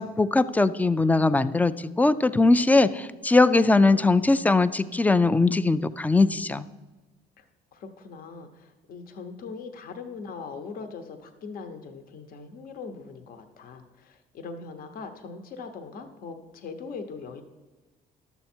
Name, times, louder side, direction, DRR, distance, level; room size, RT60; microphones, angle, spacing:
voice 1, 0.0-6.7, left 3 dB, 10° left, 14 dB, 0.3 m, -21 dB
voice 2, 7.7-17.4, left 4 dB, 60° left, 7 dB, 0.9 m, -40 dB
11.5 x 7.1 x 4.4 m, 1.2 s
cardioid pair, 110°, 17 cm